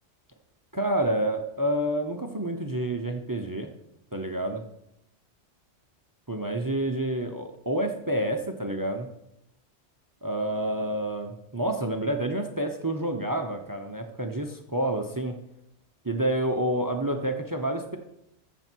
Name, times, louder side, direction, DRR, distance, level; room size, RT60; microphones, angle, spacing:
voice 1, 0.7-3.7 4.1-4.6 6.3-9.1 10.2-15.3 16.0-18.0, right 1 dB, 20° right, 5 dB, 0.7 m, -28 dB
14.0 x 7.1 x 4.6 m, 0.83 s
omnidirectional pair, 1.1 m